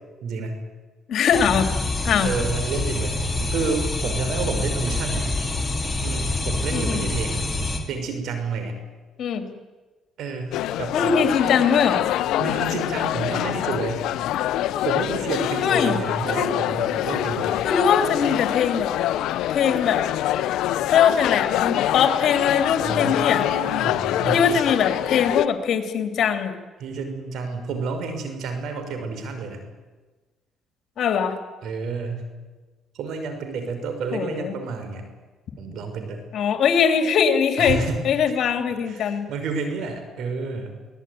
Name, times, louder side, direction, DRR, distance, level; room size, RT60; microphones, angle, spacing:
voice 1, 0.2-0.6 2.2-3.2 3.5-5.3 6.0-7.4 7.9-8.8 10.2-11.1 12.4-14.1 14.8-17.6 22.8-24.7 26.8-29.6 31.6-32.2 32.9-35.1 35.6-36.2 37.6-38.0 38.9-40.8, right 4 dB, 75° right, 7 dB, 5.5 m, -30 dB
voice 2, 1.1-1.7 2.0-2.3 6.7-7.1 9.2-9.5 10.9-12.0 15.6-16.0 16.3-16.6 17.1-17.2 17.6-18.9 19.5-20.0 20.9-23.4 24.2-26.5 31.0-31.4 34.1-34.6 36.3-39.3, left 7 dB, 65° left, 7 dB, 3.2 m, -21 dB
sound 1, 1.3-7.8, left 2 dB, 15° left, 5.0 m, -26 dB
sound 2, 10.5-25.4, left 13 dB, 80° left, 0.9 m, -25 dB
24.0 x 18.0 x 9.6 m, 1.2 s
cardioid pair, 80°, 0 cm